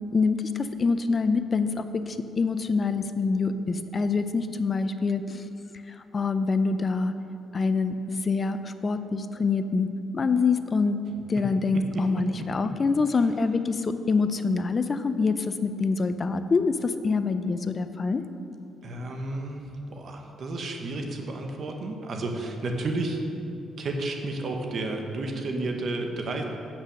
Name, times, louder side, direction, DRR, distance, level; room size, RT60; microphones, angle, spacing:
voice 1, 0.1-5.4 6.1-7.1 7.5-9.9 10.1-11.0 11.3-18.2, left 4 dB, 35° left, 10 dB, 0.4 m, -25 dB
voice 2, 18.8-23.2 23.8-26.4, right 2 dB, 55° right, 3 dB, 1.2 m, -32 dB
8.2 x 6.1 x 6.4 m, 2.7 s
cardioid pair, 90°, 0 cm